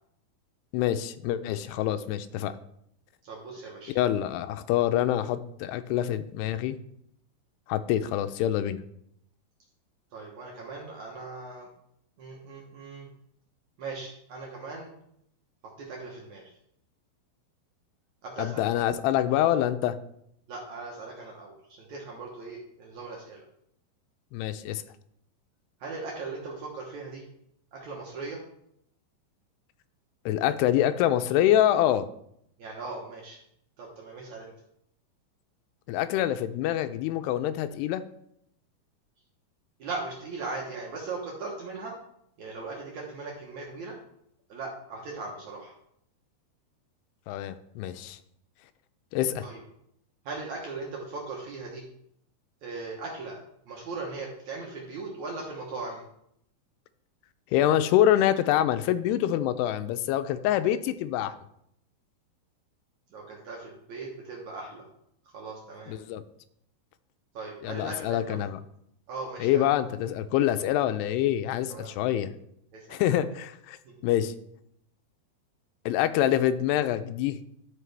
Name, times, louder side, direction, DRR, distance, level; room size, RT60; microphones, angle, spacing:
voice 1, 0.7-2.5 4.0-6.8 7.7-8.8 18.4-20.0 24.3-24.8 30.3-32.1 35.9-38.0 47.3-48.2 49.1-49.5 57.5-61.4 65.9-66.2 67.6-68.6 69.4-72.3 72.9-73.8 74.0-74.3 75.9-77.4, left 12 dB, 90° left, 12 dB, 2.7 m, -26 dB
voice 2, 3.2-3.9 10.1-11.7 12.2-13.1 13.8-14.9 15.8-16.5 18.2-18.9 20.5-23.4 25.8-27.2 27.7-28.4 32.6-33.4 33.8-34.5 39.8-41.9 42.4-43.9 44.5-45.7 49.4-49.6 50.3-51.8 52.6-56.0 63.1-64.9 65.3-66.0 67.3-68.4 69.1-69.7 71.7-71.9 72.7-73.2 73.8-73.9, right 3 dB, 65° right, -2 dB, 1.9 m, -39 dB
12.5 x 5.3 x 3.4 m, 0.73 s
omnidirectional pair, 4.7 m